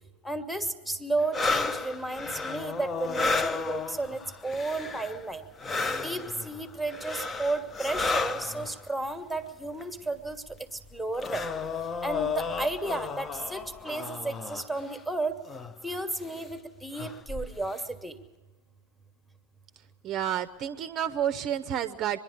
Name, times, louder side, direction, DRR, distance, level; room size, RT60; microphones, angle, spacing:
voice 1, 0.2-5.4 6.0-10.4 10.7-11.5 12.0-15.4 15.8-18.2, right 2 dB, ahead, 9 dB, 1.4 m, -33 dB
sound 1, 1.3-5.3 5.6-8.8 9.8-9.9 10.3-15.0 15.5-15.8 16.2-16.4 16.9-17.7, left 4 dB, 20° left, 0.7 m, -33 dB
voice 2, 20.0-22.2, right 10 dB, 35° right, 11 dB, 0.7 m, -30 dB
24.0 x 11.0 x 10.0 m, 1.3 s
figure-of-eight pair, 90°, 0 cm